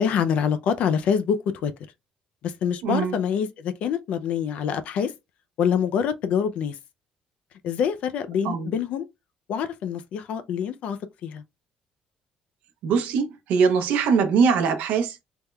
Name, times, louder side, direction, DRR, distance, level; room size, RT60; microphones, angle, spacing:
voice 1, 0.0-1.7 2.4-5.1 5.6-6.8 7.6-9.0 9.5-11.4, left 7 dB, 55° left, 0.3 m, -25 dB
voice 2, 2.8-3.1 8.4-8.7 12.8-15.1, right 6 dB, 85° right, 0.7 m, -22 dB
3.4 x 2.2 x 3.1 m
cardioid pair, 175°, 3 cm